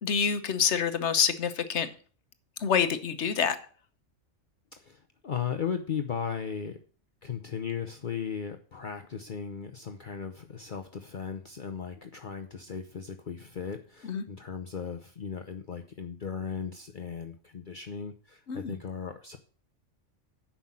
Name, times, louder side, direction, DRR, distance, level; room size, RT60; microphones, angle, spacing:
voice 1, 0.0-1.9 2.6-3.6 14.0-14.2 18.5-18.8, left 7 dB, 70° left, 10 dB, 1.3 m, -27 dB
voice 2, 4.8-6.8 7.2-19.4, left 7 dB, 45° left, 5 dB, 0.9 m, -36 dB
9.6 x 6.0 x 7.5 m, 0.42 s
omnidirectional pair, 1.2 m